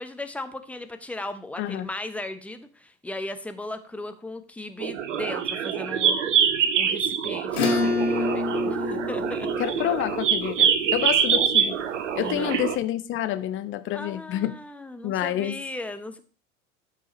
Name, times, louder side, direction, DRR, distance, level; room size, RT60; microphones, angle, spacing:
voice 1, 0.0-6.2 6.7-9.5 12.2-12.6 13.9-16.2, left 2 dB, 5° left, 0.8 m, -37 dB
voice 2, 1.6-1.9 9.6-11.8 12.1-14.6 15.0-15.6, left 12 dB, 30° left, 0.8 m, -28 dB
sound 1, 4.8-12.8, right 8 dB, 60° right, 1.0 m, -25 dB
Acoustic guitar / Strum, 7.5-12.4, left 3 dB, 60° left, 2.6 m, -29 dB
12.5 x 5.0 x 4.1 m
figure-of-eight pair, 85°, 41 cm